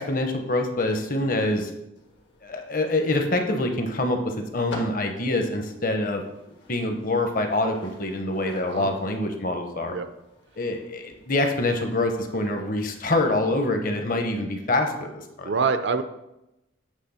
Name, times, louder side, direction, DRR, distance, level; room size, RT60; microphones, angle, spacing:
voice 1, 0.0-1.7 2.4-6.2 6.7-9.9 10.6-15.5, left 2 dB, 45° left, 5 dB, 0.8 m, -25 dB
sound 1, 2.0-13.4, left 1 dB, 75° left, 1.5 m, -47 dB
voice 2, 15.4-16.0, right 5 dB, 65° right, 10 dB, 0.4 m, -25 dB
8.4 x 3.4 x 5.6 m, 0.91 s
head